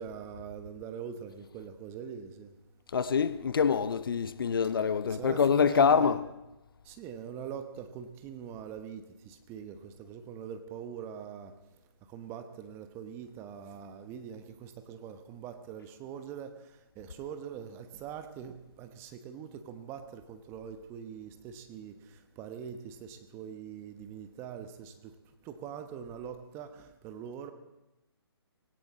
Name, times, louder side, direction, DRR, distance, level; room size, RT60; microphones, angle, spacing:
voice 1, 0.0-2.6 4.7-6.2 6.8-11.5 12.1-25.1 25.4-27.5, right 8 dB, 20° right, 1.0 m, -43 dB
voice 2, 2.9-6.2, left 6 dB, 55° left, 0.8 m, -25 dB
17.5 x 17.0 x 4.2 m
figure-of-eight pair, 140°, 14 cm